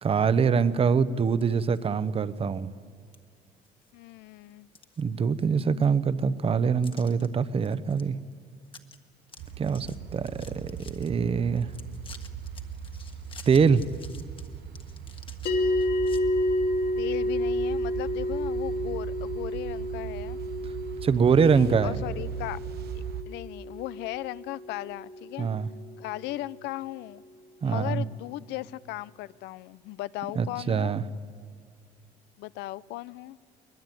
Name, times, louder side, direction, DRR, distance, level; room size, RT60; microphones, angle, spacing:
voice 1, 0.0-2.7 5.0-8.2 9.6-11.7 13.5-13.9 21.0-22.0 25.4-25.7 27.6-28.0 30.4-31.0, right 6 dB, 35° right, 0.9 m, -24 dB
sound 1, 1.3-1.9 2.3-2.4 3.1-3.2 3.6-4.1 4.5-5.5 5.8-5.9 6.8-7.3 7.6-8.0 8.3-8.4 8.7-9.0 9.2-11.1 11.6-16.2, left 5 dB, 30° left, 1.5 m, -50 dB
voice 2, 3.9-4.7 17.0-20.4 21.3-22.6 22.9-25.5 26.0-27.2 27.6-30.9 32.4-33.4, left 17 dB, 90° left, 0.5 m, -37 dB
sound 2, 9.4-23.2, right 8 dB, 70° right, 1.0 m, -39 dB
sound 3, 15.5-26.0, left 1 dB, 65° left, 2.8 m, -30 dB
23.0 x 20.5 x 9.2 m
cardioid pair, 110°, 17 cm